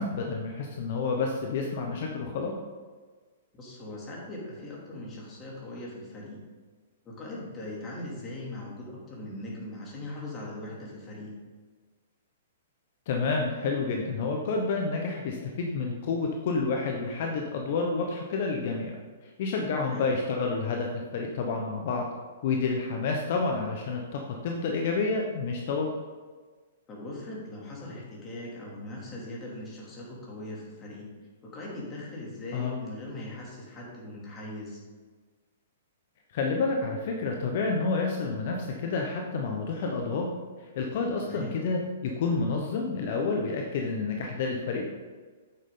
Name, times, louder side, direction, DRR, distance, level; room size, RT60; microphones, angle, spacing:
voice 1, 0.0-2.5 13.1-18.9 19.2-20.9 21.1-22.0 22.4-25.9 32.5-32.8 36.3-40.3 40.7-44.9, left 4 dB, 55° left, 1 dB, 1.0 m, -29 dB
voice 2, 3.5-6.4 7.0-11.3 19.9-20.1 26.9-31.1 31.4-34.8 41.2-41.5, left 1 dB, 20° left, -4 dB, 2.7 m, -40 dB
8.8 x 6.8 x 3.8 m, 1.5 s
hypercardioid pair, 145°, 0 cm